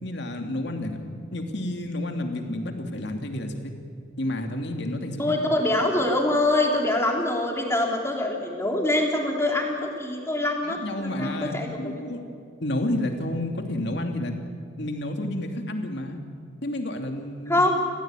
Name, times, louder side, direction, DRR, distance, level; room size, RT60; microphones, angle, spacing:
voice 1, 0.0-1.0 1.3-3.7 4.2-5.2 10.6-14.3 14.8-16.2 16.6-17.6, left 1 dB, 55° left, 4 dB, 2.7 m, -30 dB
voice 2, 5.2-11.9 17.5-17.8, left 1 dB, 15° left, 1 dB, 3.4 m, -24 dB
30.0 x 16.0 x 9.1 m, 2.2 s
head